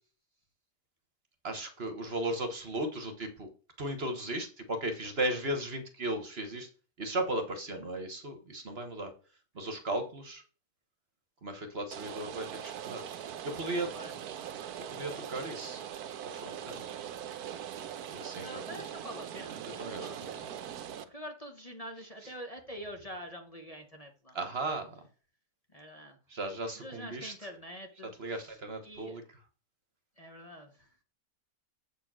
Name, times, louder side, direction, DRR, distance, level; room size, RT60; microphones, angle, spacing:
voice 1, 1.4-3.5 3.8-6.7 7.0-9.1 9.5-10.4 11.4-13.0 13.4-13.9 14.9-15.9 16.2-16.9 18.1-18.6 19.8-20.3 22.2-22.3 24.3-24.9 26.3-27.3 28.2-29.2, right 1 dB, 45° right, 6 dB, 1.3 m, -36 dB
Rain, 11.9-21.0, right 9 dB, 90° right, 1.3 m, -41 dB
voice 2, 18.4-20.5 21.0-24.4 25.7-26.2 26.8-28.6 28.8-29.2 30.2-30.9, equal, 25° left, 3 dB, 1.1 m, -46 dB
7.6 x 4.6 x 6.0 m, 0.38 s
omnidirectional pair, 1.6 m